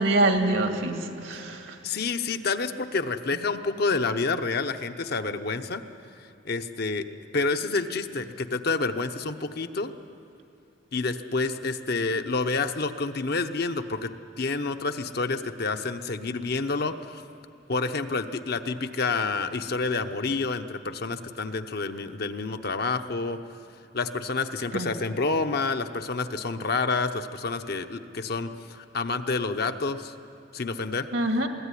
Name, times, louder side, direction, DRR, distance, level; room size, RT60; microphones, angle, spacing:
voice 1, 0.0-1.8 24.7-24.9 31.1-31.5, right 2 dB, 80° right, 4 dB, 2.1 m, -25 dB
voice 2, 1.8-5.8 6.4-7.1 7.3-9.9 10.9-14.1 14.4-17.2 17.7-23.4 23.9-30.1 30.5-31.1, left 3 dB, 55° left, 7 dB, 0.9 m, -28 dB
22.5 x 16.0 x 9.8 m, 2.5 s
head